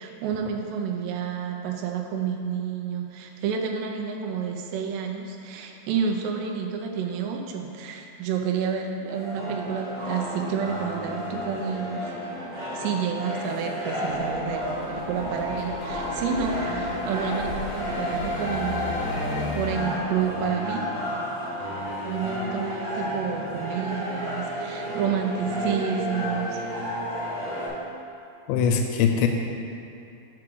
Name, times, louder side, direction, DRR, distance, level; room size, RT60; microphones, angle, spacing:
voice 1, 0.0-12.1 12.6-20.9 22.0-26.6, right 6 dB, 80° right, 2 dB, 2.6 m, -30 dB
sound 1, 9.1-27.7, equal, 60° right, 2.4 m, -32 dB
sound 2, 14.1-20.0, left 1 dB, 60° left, 1.7 m, -35 dB
voice 2, 28.5-29.3, left 7 dB, 85° left, 3 dB, 2.7 m, -21 dB
5.9 x 4.8 x 6.2 m, 2.7 s
omnidirectional pair, 5.1 m